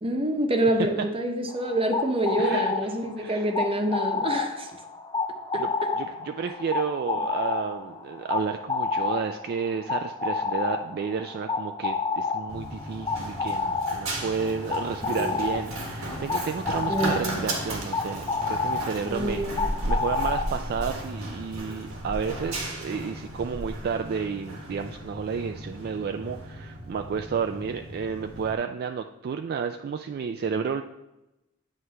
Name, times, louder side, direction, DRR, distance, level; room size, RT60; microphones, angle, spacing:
voice 1, 0.0-4.7 5.5-5.6 15.1-15.4 16.8-17.5 19.1-19.7, right 1 dB, 25° right, 4 dB, 0.8 m, -27 dB
sound 1, 1.5-20.9, left 4 dB, 20° left, 0.6 m, -30 dB
voice 2, 2.4-2.7 3.2-3.5 5.5-5.7 6.0-30.8, right 6 dB, 50° right, 6 dB, 0.3 m, -31 dB
Run, 12.5-28.5, right 1 dB, 80° right, 1.5 m, -35 dB
9.4 x 3.2 x 5.7 m, 0.94 s
head